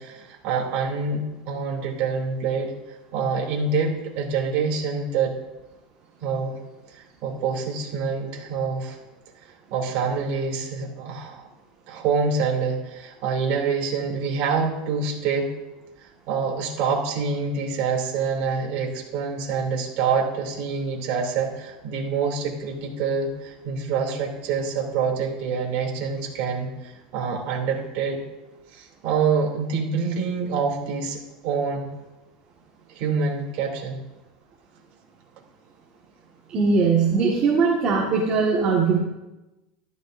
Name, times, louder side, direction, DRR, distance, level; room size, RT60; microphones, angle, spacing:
voice 1, 0.0-2.7 3.1-5.3 6.2-6.6 6.9-9.0 9.7-11.5 11.9-15.5 16.0-28.2 28.7-31.9 32.9-34.0, right 5 dB, 55° right, 0 dB, 3.0 m, -26 dB
voice 2, 36.5-39.0, right 5 dB, 35° right, -4 dB, 1.8 m, -20 dB
13.0 x 13.0 x 2.7 m, 1.0 s
supercardioid pair, 140°, 4 cm